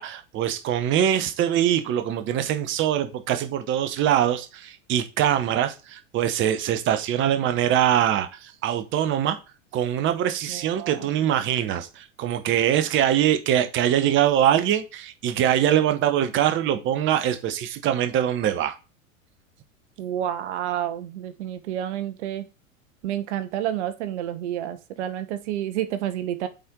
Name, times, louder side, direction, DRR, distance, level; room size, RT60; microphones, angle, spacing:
voice 1, 0.0-9.4 9.7-18.8, right 10 dB, 30° right, 0.9 m, -23 dB
voice 2, 10.5-11.1 20.0-22.5 23.0-26.5, right 11 dB, 55° right, 1.0 m, -29 dB
8.7 x 4.3 x 3.7 m
figure-of-eight pair, 90°, 42 cm